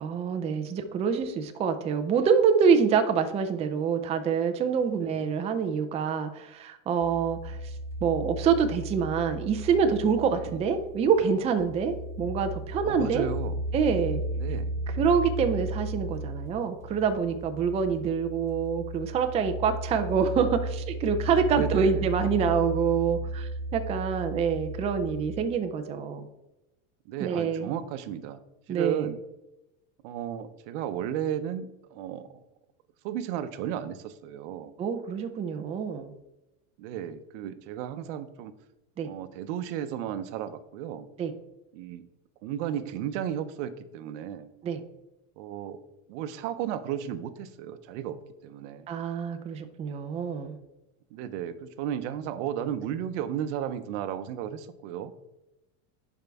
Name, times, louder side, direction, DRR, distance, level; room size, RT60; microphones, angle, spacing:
voice 1, 0.0-7.6 8.0-13.3 13.7-14.2 15.0-26.3 27.2-27.7 28.7-29.1 34.8-36.1 39.0-39.1 41.2-41.3 44.6-44.8 48.9-50.6, right 6 dB, 15° right, 7 dB, 0.4 m, -26 dB
sound 1, 7.0-25.5, right 1 dB, 10° left, 1.4 m, -35 dB
voice 2, 12.8-13.6 14.4-14.7 21.5-22.1 27.1-28.4 28.7-29.2 30.0-31.7 31.9-32.3 33.0-34.7 36.8-38.5 39.0-41.1 41.7-42.1 42.4-44.5 45.4-45.8 46.1-48.2 48.4-49.0 51.1-55.1, right 10 dB, 70° right, 12 dB, 0.8 m, -34 dB
10.5 x 4.7 x 3.5 m, 0.95 s
supercardioid pair, 155°, 38 cm